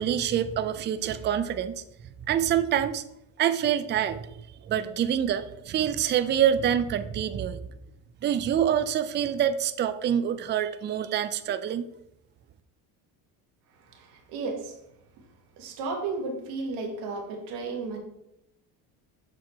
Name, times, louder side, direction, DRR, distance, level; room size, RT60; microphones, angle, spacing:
voice 1, 0.0-1.8 2.2-3.0 3.4-4.3 4.6-7.6 8.2-11.9, right 9 dB, 30° right, 12 dB, 0.4 m, -26 dB
voice 2, 13.8-14.8 15.6-18.0, right 3 dB, 90° right, 3 dB, 1.5 m, -34 dB
6.6 x 4.2 x 4.2 m, 0.83 s
supercardioid pair, 100°, 39 cm